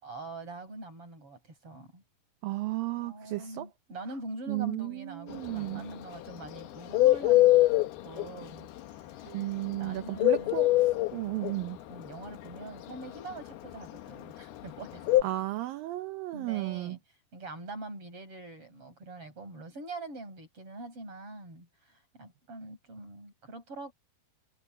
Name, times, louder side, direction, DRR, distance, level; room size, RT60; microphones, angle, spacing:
voice 1, 0.0-2.0 2.9-9.2 9.5-10.7 11.9-15.3 16.3-17.0 17.3-23.9, right 2 dB, 30° right, 7.7 m, -44 dB
voice 2, 2.4-3.7 4.5-5.8 9.3-10.7 11.1-11.8 15.2-17.0, right 17 dB, 85° right, 2.0 m, -34 dB
Bird, 5.3-15.2, left 16 dB, 70° left, 2.9 m, -24 dB
omnidirectional pair, 5.1 m